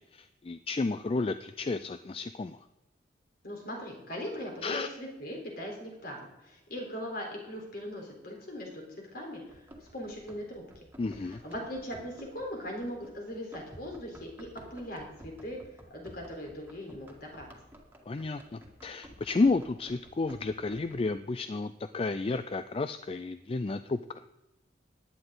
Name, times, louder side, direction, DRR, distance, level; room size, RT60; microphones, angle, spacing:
voice 1, 0.0-2.6 4.6-4.9 11.0-11.4 18.1-24.2, left 3 dB, 30° left, 11 dB, 0.4 m, -32 dB
voice 2, 3.4-8.8 9.1-10.8 11.2-15.6 15.9-17.5, equal, 55° left, 0 dB, 3.9 m, -40 dB
Run, 9.5-21.2, equal, 10° right, 1.9 m, -52 dB
16.0 x 10.5 x 3.9 m, 0.96 s
head